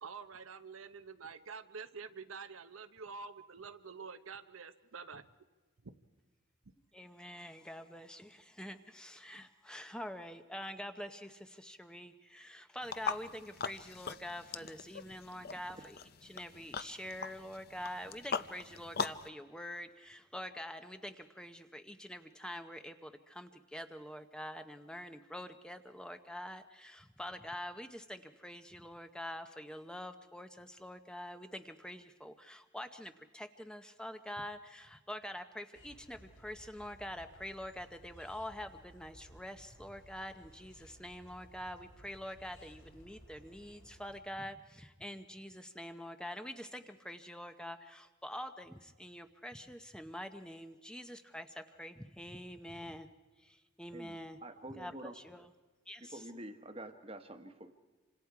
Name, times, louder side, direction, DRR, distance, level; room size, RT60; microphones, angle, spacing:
voice 1, 0.0-5.3 5.8-5.9, right 5 dB, 90° right, 10 dB, 0.8 m, -47 dB
voice 2, 6.9-53.1 53.4-54.4 54.7-55.5 55.9-56.3, equal, 5° left, 8 dB, 0.7 m, -46 dB
sound 1, 12.8-19.3, left 5 dB, 50° left, 0.6 m, -41 dB
voice 3, 15.5-15.8 53.9-55.1 56.0-57.7, right 1 dB, 30° right, 8 dB, 1.2 m, -48 dB
sound 2, 35.7-44.2, equal, 70° left, 2.9 m, -59 dB
27.5 x 25.5 x 4.8 m, 1.3 s
head